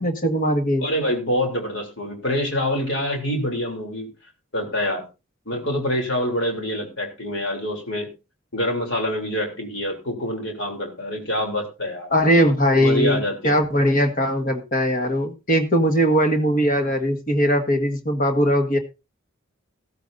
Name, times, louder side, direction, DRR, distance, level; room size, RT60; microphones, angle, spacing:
voice 1, 0.0-0.9 12.1-18.8, equal, 40° left, 6 dB, 1.6 m, -20 dB
voice 2, 0.8-4.1 4.5-5.1 5.4-8.1 8.5-12.1 12.8-13.6, equal, 60° left, 2 dB, 3.3 m, -26 dB
14.5 x 14.0 x 2.6 m, 0.28 s
head